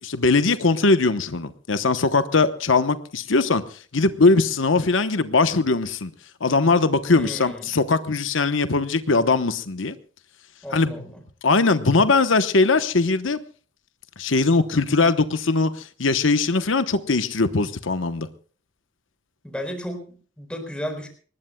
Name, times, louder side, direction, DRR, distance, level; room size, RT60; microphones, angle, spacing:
voice 1, 0.0-3.6 3.9-6.1 6.4-10.0 10.7-10.9 11.4-13.4 14.2-18.3, left 3 dB, 75° left, 11 dB, 1.0 m, -20 dB
voice 2, 7.1-7.7 10.6-11.2 19.4-21.1, equal, 5° left, 6 dB, 4.3 m, -34 dB
24.5 x 20.5 x 2.3 m, 0.43 s
head